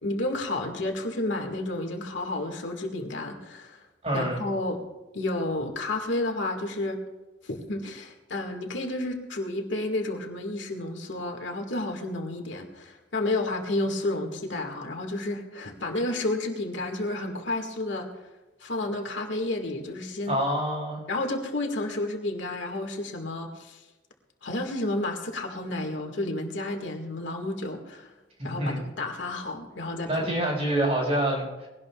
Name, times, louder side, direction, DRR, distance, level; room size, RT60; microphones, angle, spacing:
voice 1, 0.0-3.8 4.1-4.8 5.1-7.0 7.4-18.1 18.6-20.4 21.1-23.8 24.4-28.1 28.4-30.1, left 2 dB, 80° left, 3 dB, 2.0 m, -31 dB
voice 2, 4.0-4.4 20.3-21.0 28.4-28.8 30.1-31.7, right 1 dB, 35° right, -2 dB, 5.5 m, -27 dB
22.0 x 17.5 x 2.4 m, 1.1 s
head